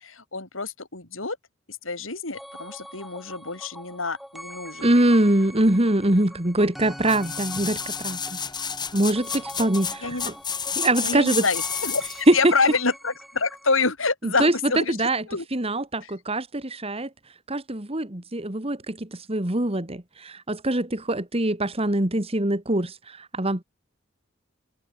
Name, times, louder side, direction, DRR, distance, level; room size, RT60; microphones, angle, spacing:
voice 1, 0.0-1.4 1.7-4.9 10.0-10.3 11.0-15.5 16.0-16.1, left 4 dB, 90° left, 5.5 m, -27 dB
sound 1, 2.3-13.9, equal, ahead, 4.4 m, -43 dB
voice 2, 4.8-8.4 8.9-10.3 10.8-11.4 12.3-12.5 14.2-14.5 14.9-15.2 15.5-17.1 17.5-23.6, right 1 dB, 30° right, 2.2 m, -23 dB
sound 2, 7.0-12.3 12.8-12.9, left 6 dB, 20° left, 3.5 m, -31 dB
open air
head